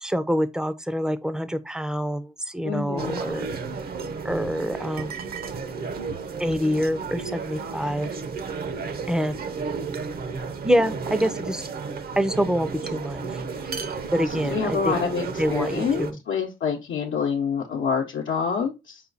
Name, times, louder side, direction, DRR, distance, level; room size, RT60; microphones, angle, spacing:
voice 1, 0.0-3.5 4.2-5.1 6.4-8.1 9.1-9.4 10.6-11.7 12.2-13.4 14.1-15.0 15.4-16.2, equal, 5° right, 0.5 m, -26 dB
voice 2, 2.6-3.2 14.4-15.2 15.5-19.0, left 6 dB, 75° left, 0.9 m, -27 dB
sound 1, 3.0-16.1, right 5 dB, 50° right, 0.7 m, -32 dB
5.6 x 2.3 x 3.9 m
cardioid pair, 90°, 20 cm